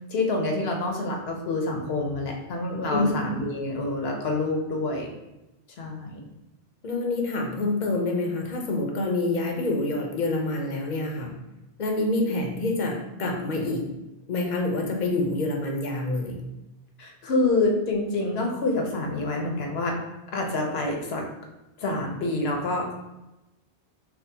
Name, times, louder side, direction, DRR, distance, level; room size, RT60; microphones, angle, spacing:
voice 1, 0.1-5.1 5.8-6.2 17.0-20.0 20.3-21.2 21.8-23.0, left 2 dB, 75° left, 1 dB, 1.0 m, -27 dB
voice 2, 6.8-11.3 11.8-13.8 14.3-16.4, left 2 dB, 50° left, 1 dB, 0.7 m, -27 dB
5.7 x 2.1 x 2.8 m, 0.96 s
omnidirectional pair, 1.1 m